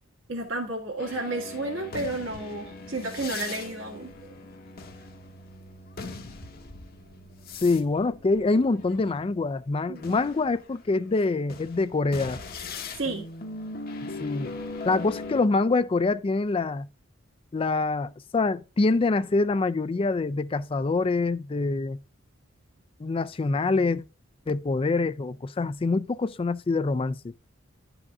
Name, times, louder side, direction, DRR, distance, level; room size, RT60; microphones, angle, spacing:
voice 1, 0.3-4.1 9.9-10.2 12.9-13.3, right 2 dB, 70° right, 1.8 m, -32 dB
sound 1, 1.0-9.5 10.0-15.4, left 3 dB, 50° left, 1.0 m, -40 dB
voice 2, 7.6-12.4 14.2-14.5 14.8-16.9 17.5-22.0 23.0-24.0 24.5-27.3, left 3 dB, 30° left, 0.4 m, -25 dB
11.0 x 4.9 x 3.5 m
head